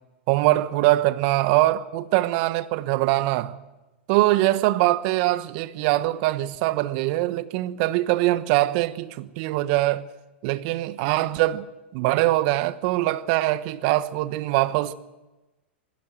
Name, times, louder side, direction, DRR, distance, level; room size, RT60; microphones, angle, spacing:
voice 1, 0.3-3.5 4.1-10.1 10.4-11.7 11.9-14.9, right 17 dB, 50° right, 1.1 m, -22 dB
20.5 x 16.0 x 9.1 m
hypercardioid pair, 105°, 6 cm